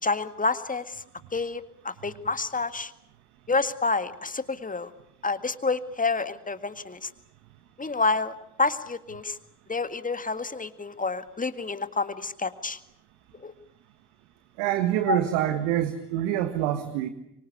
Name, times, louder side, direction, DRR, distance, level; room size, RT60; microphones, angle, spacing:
voice 1, 0.0-1.0 1.3-2.9 3.5-4.9 5.2-7.1 7.8-9.4 9.7-12.8 13.4-13.5 15.1-15.2, left 4 dB, 15° left, 11 dB, 1.9 m, -28 dB
voice 2, 14.6-17.1, right 12 dB, 65° right, 10 dB, 1.8 m, -26 dB
25.0 x 24.5 x 8.4 m, 0.79 s
figure-of-eight pair, 55°, 45 cm